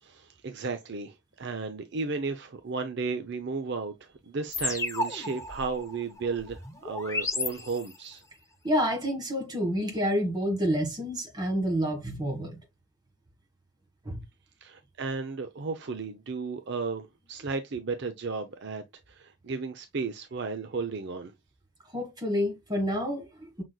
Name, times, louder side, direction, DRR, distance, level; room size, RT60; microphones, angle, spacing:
voice 1, 0.0-8.2 14.6-21.3, right 4 dB, 50° right, 0.5 m, -34 dB
sound 1, 4.5-8.2, left 2 dB, 15° left, 0.8 m, -34 dB
voice 2, 8.6-12.6 14.0-14.2 21.9-23.6, equal, 20° right, 1.6 m, -29 dB
6.1 x 3.9 x 2.2 m
head